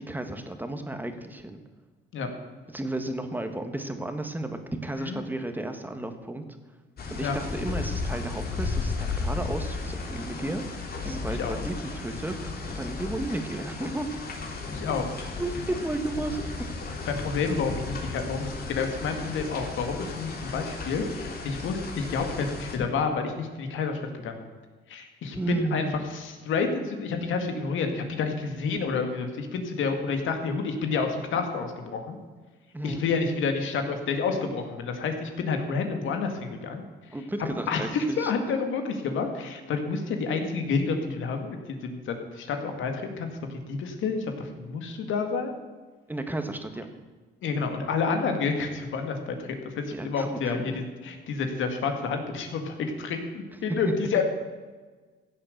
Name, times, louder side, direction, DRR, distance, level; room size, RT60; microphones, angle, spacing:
voice 1, 0.0-1.6 2.7-6.4 7.1-10.6 11.0-14.1 15.4-16.4 25.3-26.0 32.7-33.1 37.1-38.3 46.1-46.9 49.9-50.8 53.7-53.8, right 2 dB, 10° right, 7 dB, 1.6 m, -33 dB
sound 1, 7.0-22.8, left 4 dB, 50° left, 2.8 m, -34 dB
voice 2, 14.7-15.1 17.1-24.5 24.9-32.2 32.8-36.8 37.7-45.5 47.4-54.2, left 4 dB, 80° left, 5 dB, 2.1 m, -29 dB
15.0 x 7.8 x 6.8 m, 1.4 s
cardioid pair, 90°, 20 cm